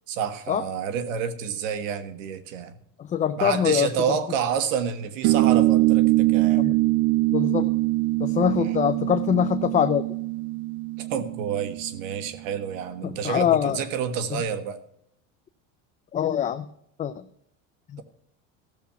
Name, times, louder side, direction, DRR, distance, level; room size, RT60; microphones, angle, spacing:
voice 1, 0.1-2.8 3.4-6.7 8.6-8.8 11.0-14.8, right 7 dB, 85° right, 12 dB, 1.5 m, -29 dB
voice 2, 3.0-3.9 6.6-6.8 7.3-7.7 8.2-10.0 13.0-13.8 16.1-16.6 17.0-17.2 17.9-18.0, left 9 dB, 20° left, 9 dB, 0.4 m, -23 dB
sound 1, 5.2-12.2, right 19 dB, 50° right, 0.4 m, -23 dB
14.0 x 7.2 x 5.7 m, 0.73 s
supercardioid pair, 120°, 38 cm